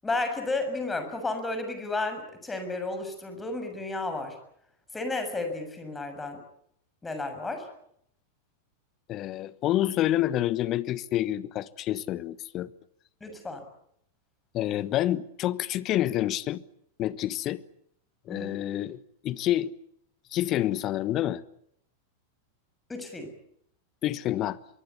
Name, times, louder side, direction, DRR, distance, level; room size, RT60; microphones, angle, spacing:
voice 1, 0.0-4.4 4.9-6.4 7.0-7.7 13.2-13.6 18.3-18.5 22.9-23.3, left 2 dB, 10° left, 7.0 m, -32 dB
voice 2, 9.1-12.7 14.5-16.6 17.0-17.6 18.3-19.0 19.2-19.7 20.3-21.4 24.0-24.6, left 13 dB, 35° left, 1.2 m, -28 dB
24.0 x 23.5 x 8.5 m
figure-of-eight pair, 90°, 0 cm